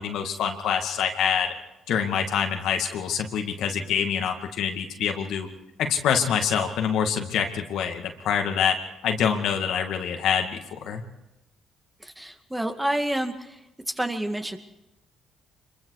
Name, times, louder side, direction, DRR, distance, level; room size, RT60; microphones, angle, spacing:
voice 1, 0.0-1.5 1.9-5.5 5.8-8.8 9.0-11.0, left 7 dB, 70° left, 4 dB, 2.2 m, -25 dB
voice 2, 12.0-13.6 13.9-14.6, right 1 dB, 10° right, 5 dB, 2.2 m, -29 dB
25.0 x 22.5 x 4.9 m, 0.95 s
hypercardioid pair, 55°, 0 cm